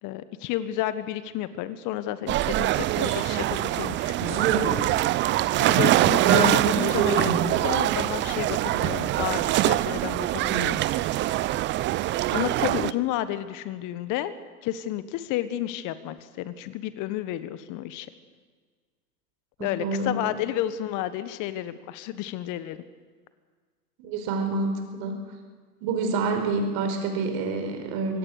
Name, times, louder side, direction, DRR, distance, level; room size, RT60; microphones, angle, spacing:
voice 1, 0.0-4.9 5.6-10.8 12.3-14.3 14.6-18.1 19.6-22.8, left 13 dB, 40° left, 13 dB, 1.4 m, -31 dB
sound 1, 2.3-12.9, right 15 dB, 25° right, 0.6 m, -24 dB
sound 2, 3.0-3.2 3.6-3.7 4.2-5.1 5.4-5.7 6.1-7.6, right 7 dB, 65° right, 3.5 m, -26 dB
voice 2, 19.8-20.3 24.0-25.2 25.8-28.2, right 3 dB, 45° right, 5 dB, 5.1 m, -28 dB
24.5 x 17.5 x 6.6 m, 1.5 s
hypercardioid pair, 100°, 47 cm